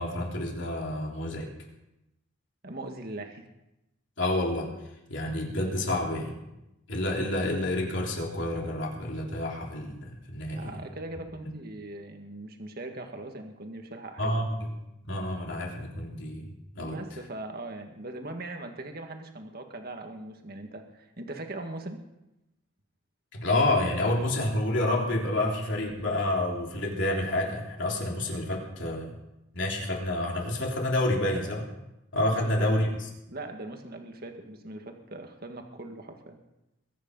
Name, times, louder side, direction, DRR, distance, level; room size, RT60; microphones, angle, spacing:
voice 1, 0.0-1.5 4.2-4.7 5.1-6.4 6.9-10.8 14.2-14.7 15.0-16.5 16.7-17.0 23.3-29.1 29.5-31.7 32.1-33.1, left 1 dB, 60° left, -1 dB, 3.7 m, -29 dB
voice 2, 2.6-3.4 10.5-14.5 16.8-22.0 32.4-32.7 33.3-36.4, right 2 dB, 50° right, 4 dB, 1.8 m, -40 dB
22.0 x 9.8 x 5.5 m, 0.91 s
head